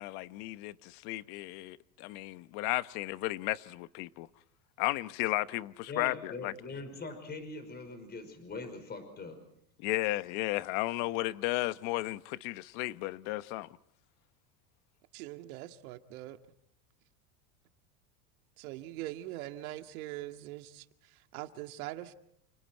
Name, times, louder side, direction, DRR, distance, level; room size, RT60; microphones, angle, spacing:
voice 1, 0.0-4.3 4.8-6.5 9.8-13.7, left 18 dB, 60° left, 1.1 m, -34 dB
voice 2, 5.9-9.4, left 3 dB, 25° left, 5.5 m, -42 dB
voice 3, 15.1-16.4 18.6-22.1, right 15 dB, 75° right, 2.2 m, -42 dB
29.5 x 29.5 x 4.6 m
supercardioid pair, 140°, 43 cm